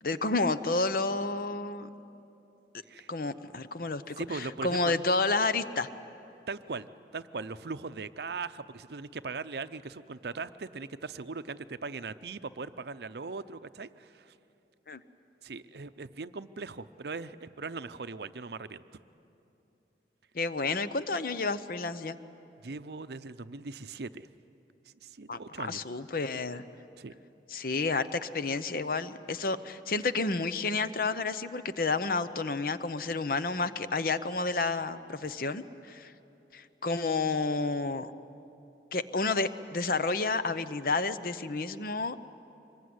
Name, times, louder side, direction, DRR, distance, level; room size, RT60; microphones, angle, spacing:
voice 1, 0.0-1.9 3.1-5.9 14.9-15.0 20.3-22.2 25.3-26.7 27.5-36.1 36.5-38.1 38.9-42.2, left 3 dB, 55° left, 12 dB, 0.8 m, -30 dB
voice 2, 4.2-4.9 6.5-6.9 7.1-14.3 15.4-18.8 22.6-24.3 25.0-25.8 27.0-27.1, right 4 dB, 65° right, 12 dB, 0.6 m, -39 dB
25.0 x 21.5 x 9.6 m, 2.9 s
head